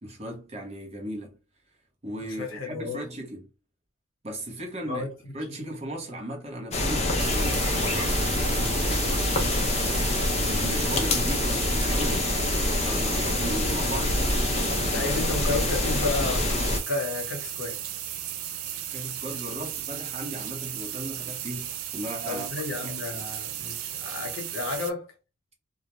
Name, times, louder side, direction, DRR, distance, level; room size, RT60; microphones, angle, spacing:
voice 1, 0.0-1.4 2.0-3.5 4.2-5.1 5.3-9.2 10.5-15.1 15.6-15.7 18.9-22.5 22.8-23.2, right 1 dB, 30° right, 0.7 m, -37 dB
voice 2, 2.2-3.1 4.9-5.1 5.5-5.6 14.9-17.8 22.2-25.2, left 3 dB, 65° left, 0.9 m, -32 dB
sound 1, 6.7-16.8, left 2 dB, 30° left, 0.5 m, -26 dB
sound 2, 7.2-24.9, right 10 dB, 80° right, 0.4 m, -35 dB
2.3 x 2.0 x 2.9 m
head